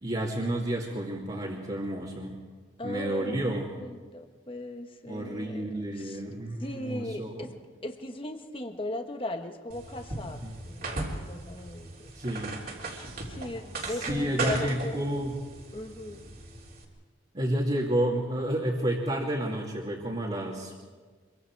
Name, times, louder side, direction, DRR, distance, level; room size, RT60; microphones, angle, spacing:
voice 1, 0.0-2.4 2.8-3.7 5.1-7.5 10.4-10.5 12.1-12.6 13.8-15.4 17.3-20.7, right 1 dB, 30° right, -5 dB, 2.5 m, -30 dB
voice 2, 2.8-5.7 6.0-6.2 6.6-7.5 7.8-12.1 13.2-15.0 15.7-16.2, left 1 dB, 25° left, 5 dB, 1.3 m, -38 dB
sound 1, 9.7-16.8, right 2 dB, 45° right, 3.3 m, -37 dB
25.5 x 23.5 x 4.7 m, 1.5 s
head